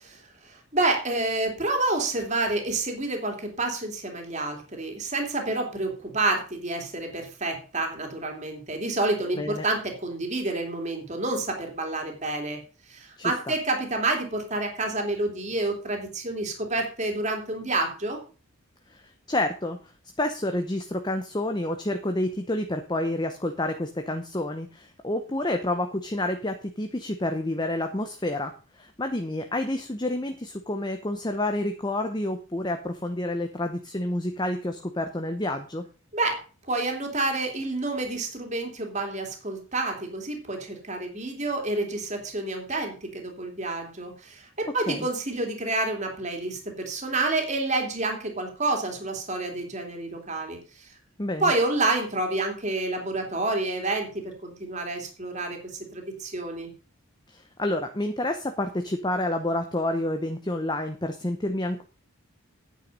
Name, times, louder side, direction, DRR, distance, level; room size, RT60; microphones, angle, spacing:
voice 1, 0.1-12.6 12.9-18.2 36.1-36.4 36.7-50.9 51.4-55.6 55.9-56.7, right 2 dB, 35° right, 3 dB, 2.8 m, -29 dB
voice 2, 9.4-9.7 13.2-13.5 18.9-19.0 19.3-19.8 20.2-35.8 44.9-45.1 51.2-51.5 57.3-61.8, left 1 dB, 20° left, 6 dB, 0.8 m, -29 dB
9.4 x 9.0 x 5.3 m, 0.35 s
head